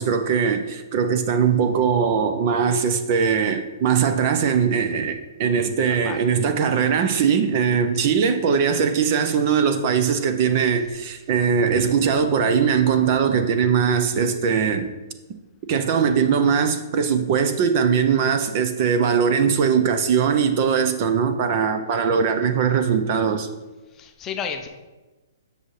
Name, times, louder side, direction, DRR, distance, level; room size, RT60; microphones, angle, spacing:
voice 1, 0.0-14.9 15.7-23.5, right 6 dB, 35° right, 0.6 m, -20 dB
voice 2, 5.8-6.2 8.0-8.1 23.9-24.7, left 7 dB, 15° left, 0.5 m, -33 dB
8.0 x 6.2 x 3.2 m
hypercardioid pair, 160°, 2 cm